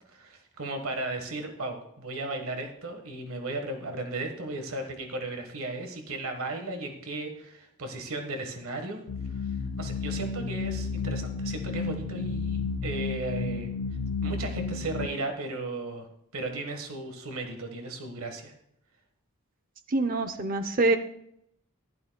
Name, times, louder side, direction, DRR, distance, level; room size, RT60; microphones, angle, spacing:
voice 1, 0.1-9.0 9.8-13.7 14.2-16.1 16.3-18.5, right 2 dB, 80° right, 5 dB, 1.5 m, -35 dB
sound 1, 9.1-15.1, left 4 dB, 70° left, 0.4 m, -32 dB
voice 2, 19.9-21.0, right 2 dB, 40° right, 8 dB, 0.8 m, -25 dB
15.0 x 12.0 x 2.3 m, 0.74 s
head